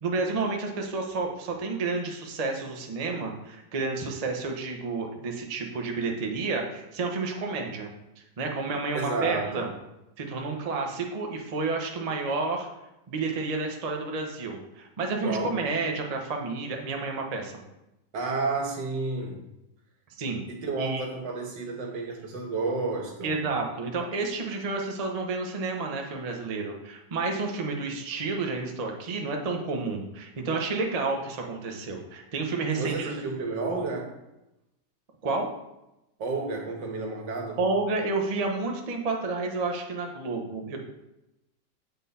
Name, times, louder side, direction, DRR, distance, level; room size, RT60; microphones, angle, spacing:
voice 1, 0.0-9.7 10.2-12.7 13.1-17.5 20.1-20.4 20.8-21.0 23.2-33.1 35.2-35.5 37.6-40.8, right 3 dB, 40° right, 2 dB, 0.5 m, -30 dB
voice 2, 8.9-9.7 15.2-15.5 18.1-19.4 20.5-23.5 32.7-34.1 36.2-37.6, right 3 dB, 80° right, 1 dB, 1.9 m, -31 dB
8.0 x 3.9 x 4.1 m, 0.92 s
omnidirectional pair, 1.9 m